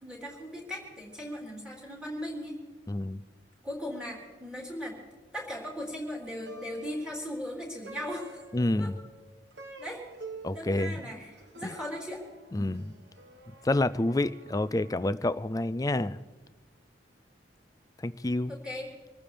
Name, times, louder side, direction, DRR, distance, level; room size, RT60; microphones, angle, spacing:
voice 1, 0.0-2.5 3.6-5.0 5.3-8.4 8.8-8.9 9.8-10.0 10.5-12.3 12.5-12.8 18.5-18.9, equal, 5° right, -3 dB, 3.9 m, -38 dB
voice 2, 2.9-3.2 8.5-8.9 10.4-11.0 11.6-11.7 12.5-12.9 13.6-16.2 18.0-18.5, left 2 dB, 20° left, 14 dB, 0.4 m, -28 dB
Plucked string instrument, 6.3-15.7, right 3 dB, 70° right, 1.4 m, -50 dB
26.5 x 14.5 x 3.4 m, 1.3 s
head